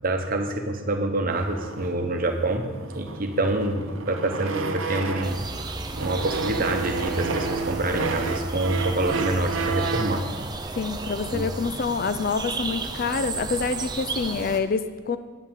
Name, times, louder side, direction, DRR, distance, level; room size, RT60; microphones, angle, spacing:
voice 1, 0.0-2.7 2.9-10.2 11.3-11.4, right 2 dB, 45° right, 4 dB, 1.0 m, -26 dB
sound 1, 1.3-5.5 5.9-10.2, right 4 dB, 70° right, 0.8 m, -31 dB
sound 2, 5.2-14.6, right 3 dB, 20° right, 0.5 m, -34 dB
voice 2, 10.7-15.2, left 4 dB, 45° left, 12 dB, 0.4 m, -27 dB
9.3 x 5.5 x 7.4 m, 1.4 s
head